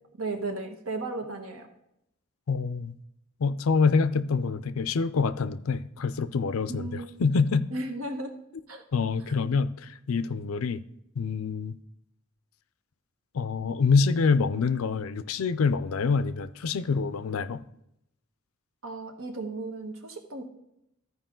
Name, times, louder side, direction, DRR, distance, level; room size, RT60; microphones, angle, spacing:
voice 1, 0.2-1.7 6.7-7.1 7.7-8.4 8.7-8.8 9.3-9.4 14.5-14.6 18.8-20.4, right 2 dB, 75° right, 1.2 m, -35 dB
voice 2, 2.5-3.0 3.4-6.9 7.2-7.7 8.9-10.8 11.2-11.7 13.3-17.6, left 4 dB, 75° left, 0.5 m, -26 dB
14.0 x 4.8 x 3.8 m
head